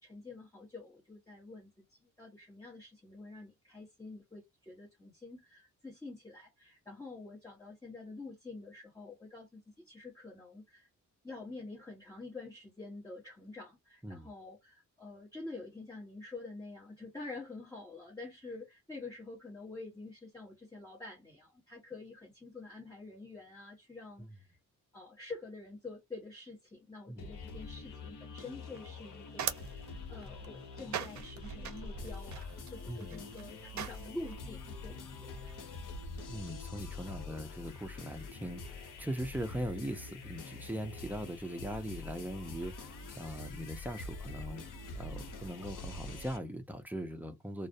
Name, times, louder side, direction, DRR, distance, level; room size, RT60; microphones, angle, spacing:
voice 1, 0.0-10.9 11.2-24.6 24.9-35.6, left 3 dB, 10° left, 1.0 m, -47 dB
sound 1, 27.2-46.4, left 3 dB, 80° left, 0.8 m, -45 dB
sound 2, 28.7-34.4, right 7 dB, 65° right, 0.5 m, -42 dB
voice 2, 32.9-33.2 36.3-44.7 45.0-47.7, equal, 5° right, 0.4 m, -40 dB
2.3 x 2.0 x 2.6 m
wide cardioid pair, 145°, 31 cm